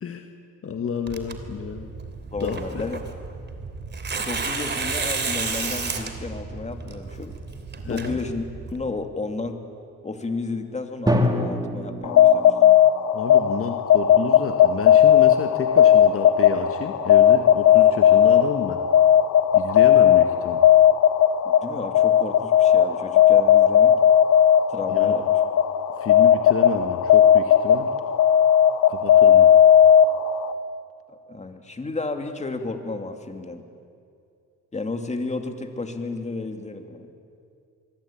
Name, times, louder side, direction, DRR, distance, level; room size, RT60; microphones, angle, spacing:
voice 1, 0.0-0.3 0.6-1.9 2.4-2.9 7.8-8.2 13.1-18.8 19.5-20.6 24.9-25.2 26.0-27.9 28.9-29.6, left 6 dB, 45° left, 5 dB, 1.8 m, -30 dB
Tearing, 1.1-8.8, right 4 dB, 35° right, 3.0 m, -32 dB
voice 2, 2.3-3.0 4.2-7.4 7.8-9.6 10.0-12.5 21.4-24.0 24.7-25.4 31.1-33.6 34.7-37.1, left 3 dB, 20° left, 6 dB, 2.6 m, -32 dB
Drum, 11.1-13.0, left 1 dB, 15° right, 3.0 m, -25 dB
sound 1, 12.0-30.5, left 10 dB, 65° left, 1.3 m, -16 dB
25.5 x 22.0 x 8.8 m, 2.4 s
cardioid pair, 90°, 30 cm